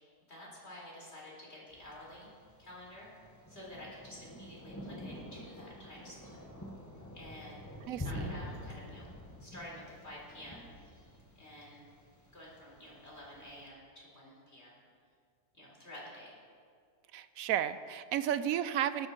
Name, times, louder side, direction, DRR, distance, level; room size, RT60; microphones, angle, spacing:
voice 1, 0.3-2.3 2.6-3.1 3.5-6.4 7.1-7.6 7.9-9.1 9.4-10.6 11.3-11.9 12.3-14.8 15.5-16.4, left 1 dB, 40° left, -4 dB, 4.4 m, -50 dB
Thunder, 1.7-13.6, left 1 dB, 10° left, 1.9 m, -47 dB
voice 2, 17.1-19.1, right 10 dB, 70° right, 13 dB, 0.9 m, -32 dB
18.0 x 12.5 x 4.5 m, 2.2 s
omnidirectional pair, 1.7 m